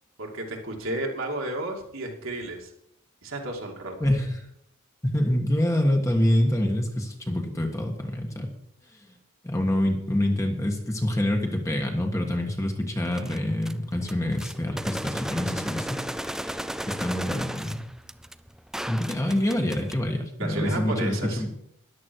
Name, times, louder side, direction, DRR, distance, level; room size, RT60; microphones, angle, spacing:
voice 1, 0.2-2.7 3.2-4.0 20.4-21.4, right 1 dB, 65° right, 0 dB, 2.5 m, -32 dB
voice 2, 4.0-4.4 5.0-8.5 9.1-9.2 9.4-16.1 16.4-16.6 16.9-17.8 18.9-21.5, left 1 dB, 15° left, 2 dB, 1.5 m, -26 dB
sound 1, 13.1-13.7 14.0-19.9, right 1 dB, ahead, 0.3 m, -35 dB
13.5 x 11.0 x 4.7 m, 0.73 s
head